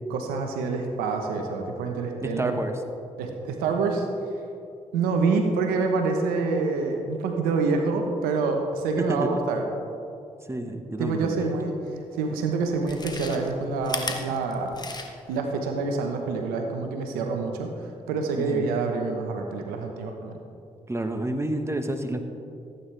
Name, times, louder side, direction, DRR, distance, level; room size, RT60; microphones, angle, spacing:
voice 1, 0.1-2.5 3.2-4.1 4.9-9.6 11.0-11.7 12.1-14.7 15.3-20.3, right 4 dB, 85° right, 4 dB, 1.0 m, -27 dB
voice 2, 2.2-2.7 9.0-9.3 10.5-11.5 18.4-18.7 20.9-22.2, right 1 dB, 20° right, 6 dB, 1.3 m, -29 dB
Chewing mastication, 12.0-12.1 12.7-15.4 15.7-15.8, left 3 dB, 30° left, 1.4 m, -35 dB
15.5 x 9.1 x 3.4 m, 2.5 s
hypercardioid pair, 45°, 15 cm